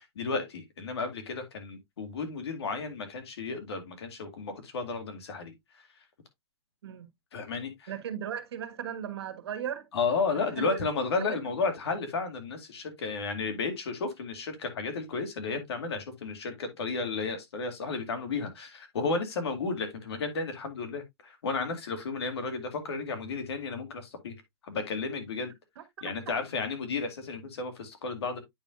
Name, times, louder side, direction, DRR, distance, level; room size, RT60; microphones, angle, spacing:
voice 1, 0.0-5.5 7.3-7.9 9.9-24.3 24.6-25.5 26.0-28.4, left 4 dB, 85° left, 2.3 m, -33 dB
voice 2, 7.9-9.8 10.6-10.8 11.2-11.4 25.8-25.9, right 9 dB, 80° right, 1.4 m, -36 dB
8.8 x 5.4 x 2.5 m
hypercardioid pair, 140°, 13 cm